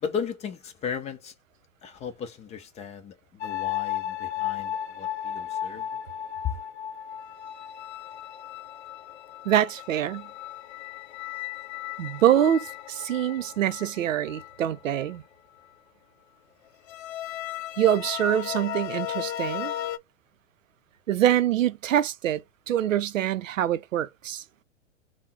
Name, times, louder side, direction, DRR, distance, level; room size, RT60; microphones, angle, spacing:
voice 1, 0.0-1.3 1.8-6.0 6.4-6.6, left 7 dB, 20° left, 0.5 m, -35 dB
sound 1, 3.4-15.1 16.9-20.0, left 11 dB, 60° left, 0.6 m, -35 dB
voice 2, 9.5-10.3 12.0-15.2 17.8-19.7 21.1-24.4, right 11 dB, 85° right, 0.5 m, -25 dB
3.6 x 2.1 x 4.1 m
hypercardioid pair, 115°, 38 cm